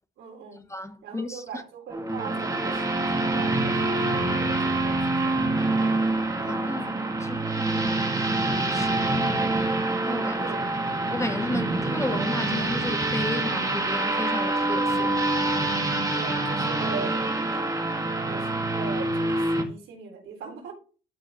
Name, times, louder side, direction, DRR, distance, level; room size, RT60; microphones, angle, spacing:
voice 1, 0.2-0.6 1.0-6.0 6.4-6.8 10.4-10.7 15.7-17.3 18.2-20.7, right 6 dB, 85° right, 4.0 m, -41 dB
voice 2, 0.7-1.4 6.4-6.9 7.2-9.6 10.0-10.5 11.1-15.1, left 2 dB, 15° left, 0.9 m, -33 dB
sound 1, 1.9-19.6, right 2 dB, 15° right, 1.9 m, -26 dB
12.5 x 6.2 x 3.0 m
cardioid pair, 90°, 20 cm